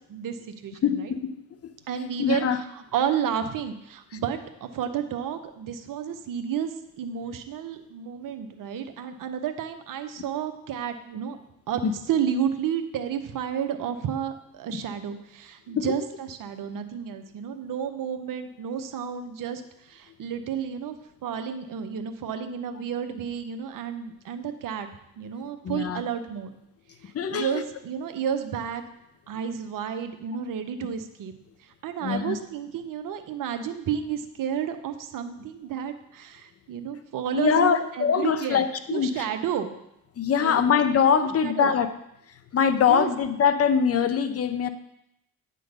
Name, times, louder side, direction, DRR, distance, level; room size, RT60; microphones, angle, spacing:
voice 1, 0.1-1.1 1.9-2.5 2.9-11.4 11.7-11.8 12.1-21.0 21.2-24.9 25.2-26.5 27.0-28.8 29.3-31.3 31.6-38.6 38.9-39.7 40.4-40.6 41.4-41.7 42.8-43.1, right 8 dB, 60° right, 8 dB, 0.9 m, -31 dB
voice 2, 0.8-1.4 1.6-1.7 2.2-2.6 4.1-4.2 11.8-11.9 14.7-14.8 15.7-16.0 25.6-26.0 27.0-27.6 32.0-32.4 37.3-39.3 40.2-41.9 42.3-44.7, left 7 dB, 40° left, 10 dB, 0.8 m, -23 dB
8.8 x 3.9 x 6.6 m, 0.80 s
supercardioid pair, 65°, 37 cm